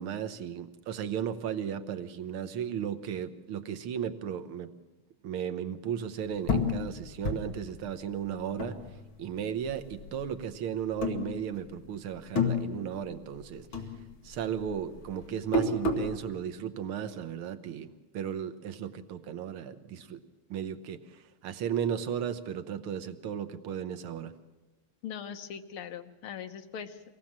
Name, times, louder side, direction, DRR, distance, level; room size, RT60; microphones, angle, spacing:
voice 1, 0.0-4.7 5.2-8.8 9.2-13.7 14.2-17.9 18.1-20.2 20.5-24.3, right 8 dB, 85° right, 10 dB, 1.9 m, -35 dB
sound 1, 6.5-9.4 9.7-10.5 10.9-11.9 12.1-13.5 13.7-16.2, left 3 dB, 70° left, 2.6 m, -31 dB
voice 2, 25.0-27.0, left 8 dB, 85° left, 8 dB, 1.9 m, -40 dB
23.5 x 17.5 x 7.4 m, 1.2 s
omnidirectional pair, 2.3 m